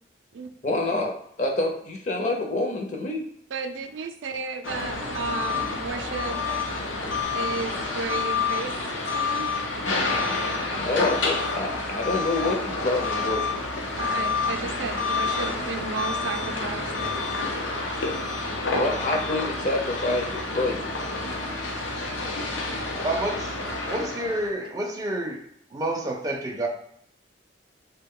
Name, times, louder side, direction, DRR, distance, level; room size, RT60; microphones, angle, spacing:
voice 1, 0.6-3.2 10.7-13.6 18.8-20.9, left 2 dB, 40° left, 1 dB, 0.6 m, -27 dB
voice 2, 3.5-6.4 7.3-8.7 9.1-9.5 14.0-16.8, right 4 dB, 85° right, 7 dB, 0.4 m, -33 dB
sound 1, 4.6-24.5, left 3 dB, 90° left, 0.7 m, -28 dB
voice 3, 23.0-23.5 23.9-25.4 25.7-26.7, right 1 dB, 20° right, 0 dB, 0.4 m, -28 dB
3.5 x 2.2 x 3.6 m, 0.70 s
head